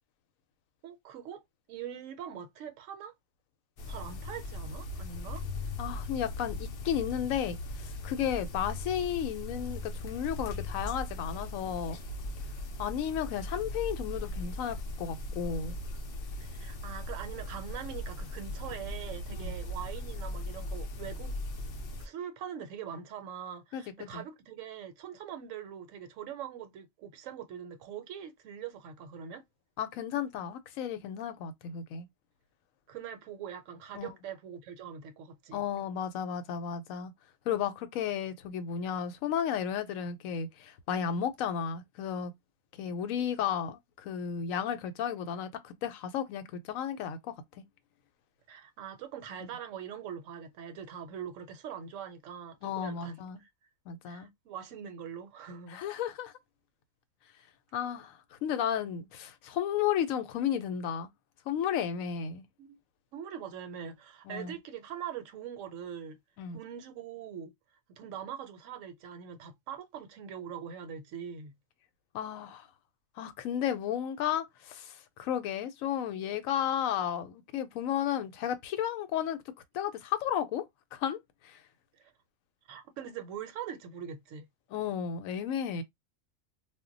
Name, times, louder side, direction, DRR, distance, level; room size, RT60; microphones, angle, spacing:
voice 1, 0.8-1.4 1.7-3.1 3.9-5.4 16.4-21.4 22.0-29.4 32.9-35.6 48.5-53.5 54.1-55.8 62.6-62.8 63.1-66.2 66.5-67.5 67.9-71.5 82.0-82.1 82.7-84.5, right 8 dB, 75° right, 1.0 m, -42 dB
sound 1, 3.8-22.1, left 1 dB, 65° left, 0.6 m, -39 dB
voice 2, 5.8-6.6 6.8-12.0 12.8-15.7 19.3-19.5 23.7-24.2 29.8-32.1 33.9-34.1 35.5-37.1 37.5-42.3 42.8-47.3 52.6-53.4 53.9-54.3 55.7-56.3 57.7-61.1 61.5-62.4 64.3-64.5 66.4-66.6 72.1-72.7 73.2-79.4 79.7-80.7 80.9-81.2 81.4-81.6 84.7-85.8, left 9 dB, 80° left, 1.0 m, -33 dB
2.2 x 2.1 x 3.7 m
omnidirectional pair, 1.4 m